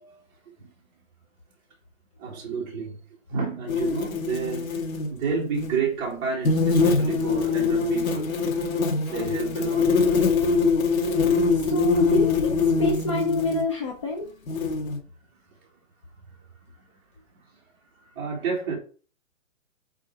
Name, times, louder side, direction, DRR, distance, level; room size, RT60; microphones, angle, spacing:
voice 1, 2.2-3.0 3.3-8.3 9.1-9.9 15.6-15.7 16.4-16.5 16.8-16.9 18.0-18.8, right 5 dB, 20° right, 2.1 m, -30 dB
sound 1, 3.7-5.1 5.5-5.8 6.5-13.6 14.5-15.0, left 4 dB, 90° left, 2.5 m, -23 dB
voice 2, 11.5-14.3, left 2 dB, 25° left, 0.7 m, -27 dB
8.5 x 3.8 x 4.6 m
hypercardioid pair, 170°, 40 cm